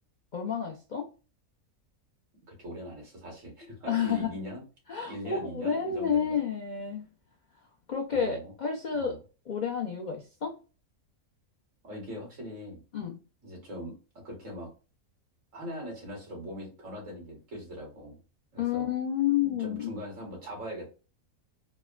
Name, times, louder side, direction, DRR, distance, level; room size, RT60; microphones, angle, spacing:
voice 1, 0.3-1.1 3.9-4.3 4.9-7.1 7.9-9.2 9.5-10.5 12.9-13.2 18.6-19.9, left 7 dB, 70° left, 0 dB, 0.4 m, -30 dB
voice 2, 2.6-4.6 5.1-6.4 8.1-8.5 8.9-9.2 11.8-12.8 13.4-14.7 15.5-18.2 18.5-18.9 19.4-20.9, equal, 60° right, -2 dB, 2.1 m, -41 dB
4.0 x 2.1 x 2.2 m, 0.33 s
omnidirectional pair, 1.5 m